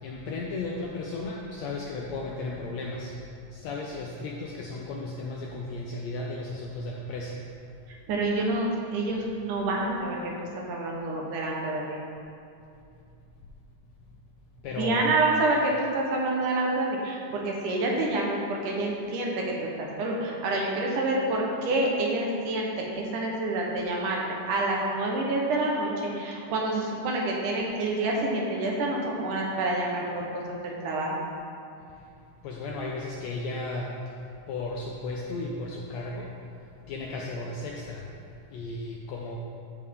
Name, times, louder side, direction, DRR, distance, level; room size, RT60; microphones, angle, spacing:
voice 1, 0.0-7.4 14.6-15.1 31.9-32.1 32.4-36.3 36.9-38.2 38.5-39.4, left 2 dB, 80° left, -2 dB, 1.6 m, -35 dB
voice 2, 8.1-8.7 8.9-12.0 14.8-18.4 18.6-19.4 19.8-24.2 24.5-30.3 30.6-31.2, right 2 dB, 75° right, -1 dB, 2.6 m, -27 dB
14.0 x 4.9 x 3.7 m, 2.5 s
omnidirectional pair, 3.8 m